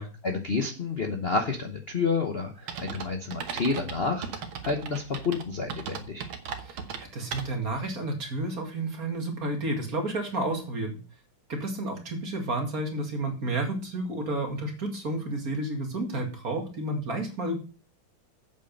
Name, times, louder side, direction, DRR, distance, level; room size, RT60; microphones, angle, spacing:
voice 1, 0.2-6.3, left 4 dB, 40° left, 4 dB, 0.9 m, -29 dB
sound 1, 2.7-7.8, right 6 dB, 80° right, 2.0 m, -37 dB
voice 2, 6.6-11.0 11.5-17.6, right 2 dB, 45° right, 3 dB, 2.5 m, -31 dB
8.3 x 7.9 x 5.3 m, 0.35 s
omnidirectional pair, 2.2 m